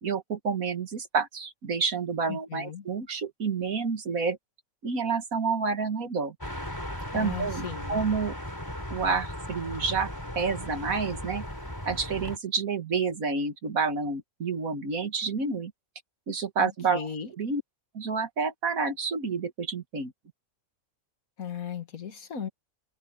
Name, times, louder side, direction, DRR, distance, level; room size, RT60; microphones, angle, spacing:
voice 1, 0.0-4.4 4.8-6.4 7.1-8.4 8.9-10.1 10.4-11.4 11.8-15.7 16.3-17.1 17.4-17.6 17.9-20.1, right 5 dB, 80° right, 2.2 m, -29 dB
voice 2, 2.3-2.8 7.1-8.0 16.6-17.3 21.4-22.5, left 7 dB, 80° left, 2.1 m, -37 dB
sound 1, 6.4-12.4, equal, 15° left, 4.3 m, -37 dB
omnidirectional pair, 1.5 m